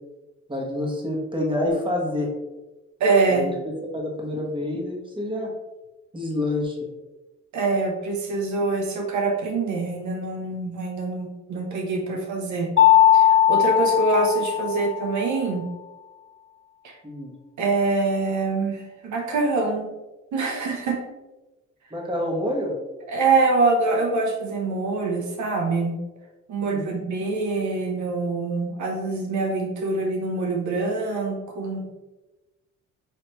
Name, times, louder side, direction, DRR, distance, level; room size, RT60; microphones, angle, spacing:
voice 1, 0.5-2.3 3.3-5.5 6.1-6.8 17.0-17.3 21.9-22.7 26.6-27.0, left 1 dB, 15° right, -1 dB, 1.2 m, -27 dB
voice 2, 3.0-3.5 7.5-12.7 13.1-15.6 16.8-16.9 17.6-19.9 20.3-21.0 23.1-26.0 26.5-31.8, right 3 dB, 70° right, 1 dB, 0.9 m, -24 dB
Mallet percussion, 12.8-15.3, left 10 dB, 45° left, 0.5 m, -18 dB
4.9 x 3.2 x 3.0 m, 1.1 s
cardioid pair, 90°, 30 cm